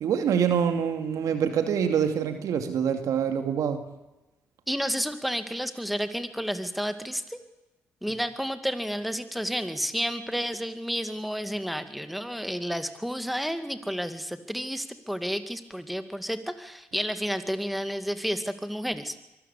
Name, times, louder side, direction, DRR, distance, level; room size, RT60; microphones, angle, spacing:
voice 1, 0.0-3.8, right 7 dB, 75° right, 7 dB, 2.5 m, -25 dB
voice 2, 4.7-7.4 8.0-19.2, equal, ahead, 9 dB, 2.3 m, -31 dB
24.0 x 13.5 x 8.5 m, 1.0 s
supercardioid pair, 60°, 6 cm